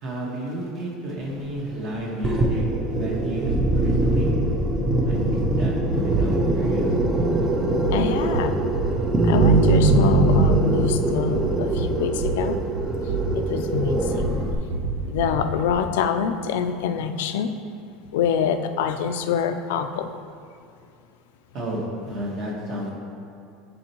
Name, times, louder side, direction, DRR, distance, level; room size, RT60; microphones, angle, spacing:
voice 1, 0.0-4.3 5.0-6.9 21.5-22.9, equal, 40° right, -2 dB, 1.4 m, -32 dB
sound 1, 2.1-15.7, right 3 dB, 80° right, 0.7 m, -30 dB
sound 2, 2.2-14.6, right 2 dB, 15° right, 0.5 m, -22 dB
voice 2, 7.9-8.7 9.2-12.6 13.3-14.6 15.1-17.5 18.1-20.1, left 7 dB, 85° left, 7 dB, 0.4 m, -26 dB
10.0 x 4.4 x 3.0 m, 2.5 s
cardioid pair, 170°, 0 cm